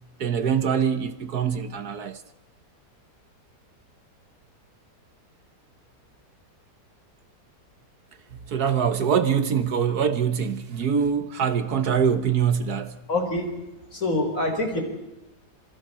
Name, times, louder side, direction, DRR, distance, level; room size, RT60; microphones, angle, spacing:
voice 1, 0.2-2.2 8.5-13.0, right 7 dB, 70° right, 1.7 m, -24 dB
voice 2, 13.1-13.5 13.9-14.8, left 2 dB, 50° left, 4.9 m, -25 dB
27.0 x 26.0 x 4.4 m
omnidirectional pair, 1.8 m